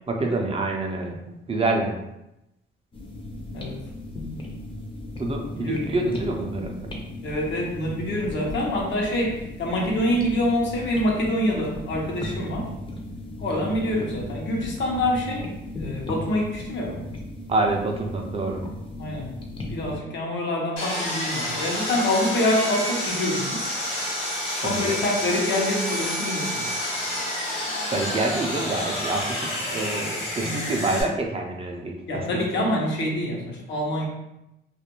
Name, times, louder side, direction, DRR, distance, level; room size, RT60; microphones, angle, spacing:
voice 1, 0.1-2.0 5.2-6.7 17.5-18.6 24.6-25.0 27.9-32.2 32.6-32.7, right 2 dB, 30° right, 1 dB, 0.4 m, -27 dB
sound 1, 2.9-20.0, left 2 dB, 25° left, 0.6 m, -36 dB
voice 2, 7.2-12.7 13.4-15.5 15.8-17.0 19.0-19.3 19.7-23.6 24.6-26.7 30.4-30.6 32.1-34.1, left 1 dB, 65° left, -2 dB, 0.8 m, -26 dB
Sawing, 20.8-31.0, left 1 dB, 85° left, 1.1 m, -29 dB
2.4 x 2.1 x 2.9 m, 0.89 s
cardioid pair, 90°, 20 cm